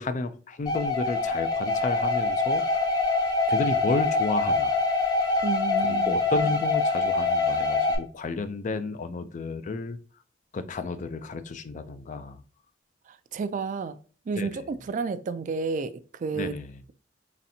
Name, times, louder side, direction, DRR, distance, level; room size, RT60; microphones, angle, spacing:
voice 1, 0.0-2.6 3.5-4.7 5.9-10.0 10.5-12.4 14.4-14.6 16.3-16.8, left 3 dB, 40° left, 0.4 m, -32 dB
sound 1, 0.7-8.0, left 3 dB, 20° left, 0.9 m, -25 dB
voice 2, 5.4-6.2 13.3-14.0 14.3-16.5, right 4 dB, 45° right, 0.3 m, -30 dB
4.1 x 3.2 x 2.7 m
head